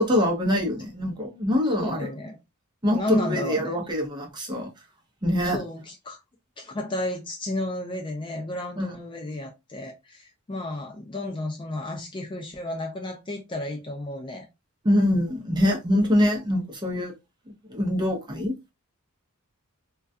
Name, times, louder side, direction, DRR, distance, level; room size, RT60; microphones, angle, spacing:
voice 1, 0.0-2.1 2.8-4.7 5.2-5.6 8.8-8.9 14.8-17.1 17.7-18.7, left 1 dB, 20° right, 0.6 m, -24 dB
voice 2, 1.6-2.4 2.9-3.8 5.5-6.2 6.6-14.5, left 1 dB, 20° left, 0.4 m, -32 dB
2.3 x 2.2 x 2.5 m
head